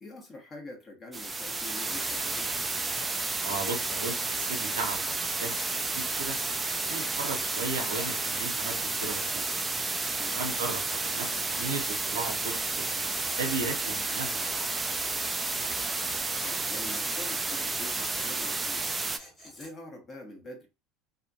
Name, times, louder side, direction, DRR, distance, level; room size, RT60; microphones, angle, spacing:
voice 1, 0.0-2.5 10.1-10.4 16.2-18.9 19.4-20.7, left 2 dB, 35° left, 1.2 m, -45 dB
sound 1, 1.1-19.2, right 3 dB, 15° right, 0.4 m, -31 dB
Tools, 2.5-10.2 12.4-17.2 17.9-19.7, equal, 15° left, 1.6 m, -52 dB
voice 2, 3.4-6.4 6.9-9.4 10.3-12.9 13.4-14.7, right 3 dB, 85° right, 0.7 m, -36 dB
2.6 x 2.5 x 2.7 m
hypercardioid pair, 80°, 0 cm